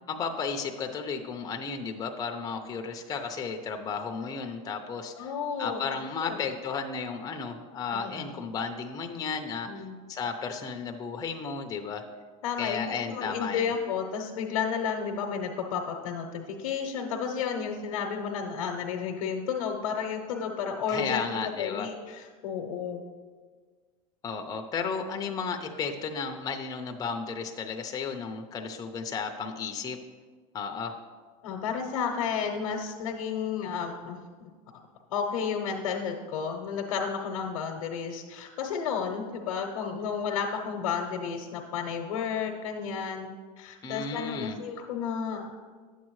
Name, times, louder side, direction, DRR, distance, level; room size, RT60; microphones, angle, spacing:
voice 1, 0.1-5.3 5.6-12.0 12.6-13.7 20.9-21.9 24.2-30.0 30.5-31.0 43.8-44.6, left 5 dB, 20° left, 4 dB, 0.6 m, -34 dB
voice 2, 5.2-6.4 7.9-8.3 9.7-9.9 12.4-23.0 31.4-34.5 35.1-45.5, left 6 dB, 80° left, 2 dB, 0.8 m, -32 dB
9.4 x 7.3 x 3.1 m, 1.5 s
supercardioid pair, 125°, 17 cm